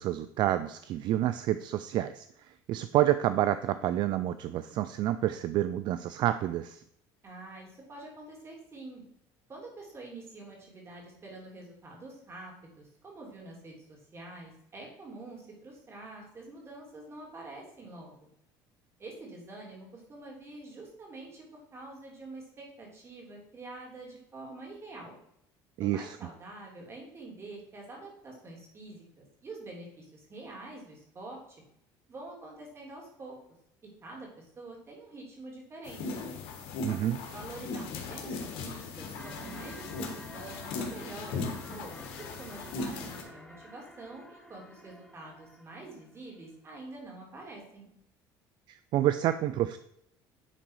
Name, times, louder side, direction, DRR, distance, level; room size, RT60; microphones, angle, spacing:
voice 1, 0.0-6.8 25.8-26.2 36.8-37.2 48.7-49.8, right 13 dB, 55° right, 12 dB, 0.4 m, -29 dB
voice 2, 7.2-9.0 9.5-18.3 19.0-25.2 25.8-31.4 32.1-33.4 34.0-36.2 37.3-41.9 42.2-47.9, right 2 dB, 30° right, -1 dB, 3.0 m, -46 dB
sound 1, 35.8-43.2, left 3 dB, 75° left, 1.6 m, -38 dB
sound 2, 39.1-46.4, equal, 5° left, 0.9 m, -51 dB
10.0 x 4.0 x 4.7 m, 0.74 s
cardioid pair, 125°, 9 cm